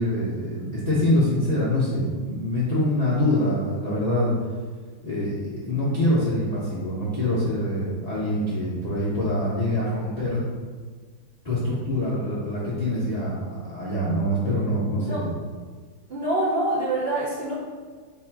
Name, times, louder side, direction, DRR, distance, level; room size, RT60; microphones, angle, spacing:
voice 1, 0.0-4.3 5.0-10.4 11.4-15.3, left 1 dB, 45° left, -9 dB, 0.5 m, -25 dB
voice 2, 16.1-17.5, right 1 dB, 55° right, -9 dB, 0.7 m, -25 dB
4.2 x 2.7 x 4.5 m, 1.5 s
omnidirectional pair, 2.1 m